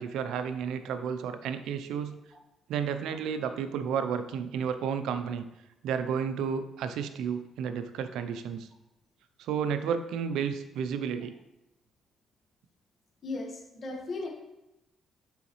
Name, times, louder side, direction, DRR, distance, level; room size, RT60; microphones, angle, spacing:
voice 1, 0.0-2.2 2.7-5.4 5.8-8.7 9.4-11.3, right 7 dB, 85° right, 10 dB, 0.5 m, -32 dB
voice 2, 13.2-14.3, left 3 dB, 45° left, 1 dB, 1.3 m, -36 dB
6.8 x 4.9 x 3.1 m, 0.92 s
cardioid pair, 90°, 0 cm